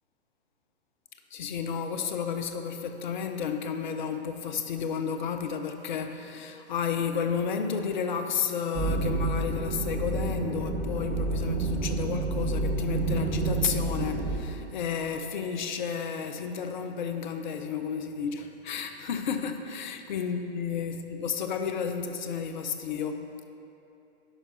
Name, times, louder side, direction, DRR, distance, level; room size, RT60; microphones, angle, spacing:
voice 1, 1.3-23.4, left 6 dB, 45° left, 7 dB, 0.7 m, -32 dB
sound 1, 8.7-14.4, right 2 dB, 15° right, 0.8 m, -29 dB
11.0 x 5.3 x 4.1 m, 2.7 s
figure-of-eight pair, 115°, 33 cm